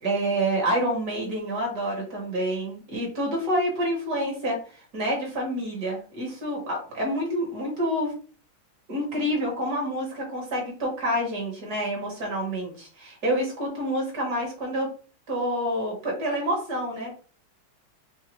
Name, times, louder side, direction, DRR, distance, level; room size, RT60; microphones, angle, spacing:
voice 1, 0.0-8.1 8.9-14.9 15.3-17.2, equal, 50° right, -1 dB, 1.8 m, -28 dB
5.5 x 2.0 x 3.0 m, 0.39 s
omnidirectional pair, 2.2 m